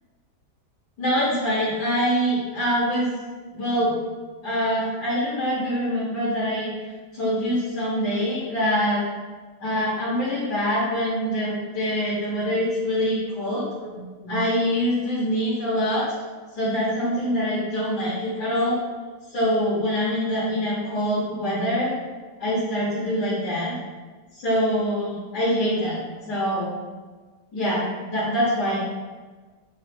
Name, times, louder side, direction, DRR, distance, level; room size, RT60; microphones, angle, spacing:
voice 1, 1.0-3.1 3.5-4.0 4.4-6.7 7.1-9.0 9.6-16.0 16.5-18.8 19.3-22.0 22.4-23.7 24.3-26.0 26.3-26.7 27.5-28.8, equal, 65° left, -9 dB, 1.6 m, -24 dB
3.8 x 2.4 x 3.4 m, 1.4 s
omnidirectional pair, 1.9 m